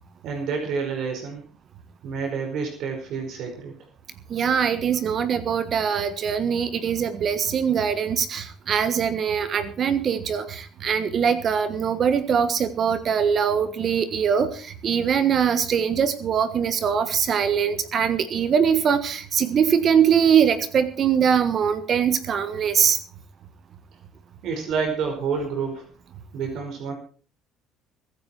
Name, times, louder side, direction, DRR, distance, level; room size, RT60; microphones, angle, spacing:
voice 1, 0.2-1.4 2.0-3.7 24.4-25.9 26.3-26.9, right 5 dB, 65° right, 3 dB, 5.0 m, -28 dB
voice 2, 4.3-23.0, right 7 dB, 45° right, 12 dB, 1.4 m, -22 dB
23.0 x 10.0 x 4.5 m, 0.40 s
cardioid pair, 110°, 0 cm